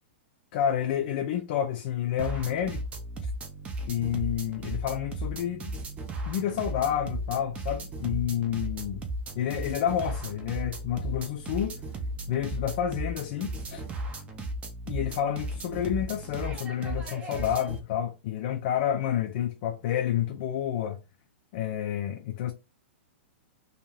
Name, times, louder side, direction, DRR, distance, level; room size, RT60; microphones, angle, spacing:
voice 1, 0.5-2.8 3.2-3.3 3.9-5.7 6.3-9.0 9.4-11.8 12.3-13.8 14.9-21.0 21.5-22.5, left 10 dB, 55° left, 0.4 m, -29 dB
sound 1, 2.2-17.8, right 1 dB, 20° right, 0.5 m, -36 dB
2.6 x 2.3 x 3.1 m
hypercardioid pair, 135°, 6 cm